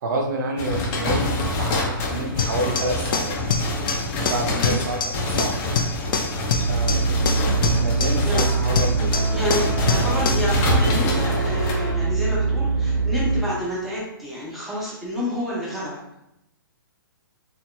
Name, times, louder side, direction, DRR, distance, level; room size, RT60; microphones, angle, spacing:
voice 1, 0.0-3.4 4.2-5.6 6.7-7.2 7.5-10.2, right 2 dB, 55° right, 2 dB, 0.7 m, -29 dB
sound 1, 0.6-11.7, left 1 dB, 30° left, 0.7 m, -27 dB
sound 2, 2.4-10.5, left 5 dB, 70° left, 0.4 m, -26 dB
sound 3, 6.5-13.4, right 4 dB, 25° right, 0.9 m, -23 dB
voice 2, 9.3-16.0, left 1 dB, ahead, -7 dB, 0.9 m, -29 dB
2.8 x 2.8 x 2.2 m, 0.85 s
hypercardioid pair, 135°, 12 cm